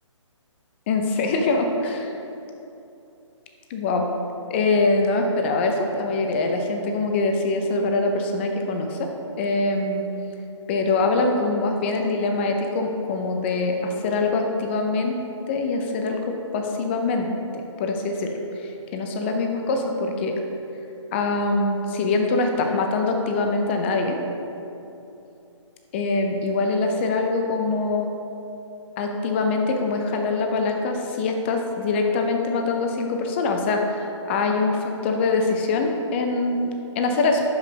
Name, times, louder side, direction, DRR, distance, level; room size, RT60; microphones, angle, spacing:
voice 1, 0.9-2.1 3.7-4.1 4.5-9.1 9.4-10.1 10.7-15.1 15.5-18.3 18.6-20.4 21.1-24.2 25.9-28.1 29.0-37.4, left 3 dB, 20° left, 3 dB, 0.5 m, -24 dB
11.0 x 5.3 x 2.8 m, 2.8 s
hypercardioid pair, 150°, 16 cm